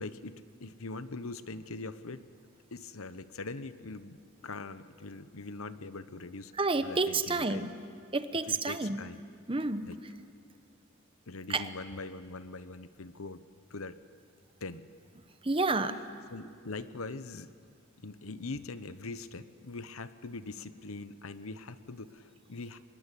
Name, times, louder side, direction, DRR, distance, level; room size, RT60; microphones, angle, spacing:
voice 1, 0.0-2.2 2.7-6.5 6.8-7.6 8.5-9.2 9.9-10.0 11.3-13.4 13.7-14.0 14.6-14.9 16.3-17.5 18.0-22.9, left 3 dB, 90° left, 13 dB, 1.0 m, -42 dB
voice 2, 6.6-7.7 8.1-9.0 9.5-9.9 11.5-11.7 15.4-16.0, right 3 dB, 25° right, 10 dB, 0.9 m, -30 dB
25.0 x 21.0 x 10.0 m, 2.2 s
head